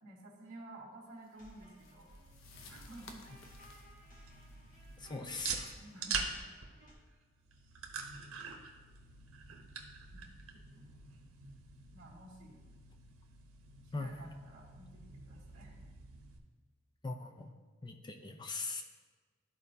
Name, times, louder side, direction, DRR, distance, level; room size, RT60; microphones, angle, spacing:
voice 1, 0.0-2.1 2.7-3.2 5.8-6.4 10.1-10.3 10.7-10.9 11.9-12.6 13.8-15.7, right 1 dB, 55° right, -8 dB, 1.4 m, -53 dB
sound 1, 1.2-6.1, left 4 dB, 75° left, 0.7 m, -59 dB
sound 2, 1.3-6.9, equal, 40° left, 1.6 m, -59 dB
sound 3, 2.1-16.4, right 5 dB, 85° right, 0.9 m, -45 dB
voice 2, 5.0-5.7 13.9-14.3 17.0-17.5 17.8-18.8, left 3 dB, 20° left, 4 dB, 0.5 m, -41 dB
12.5 x 4.3 x 2.7 m, 1.4 s
head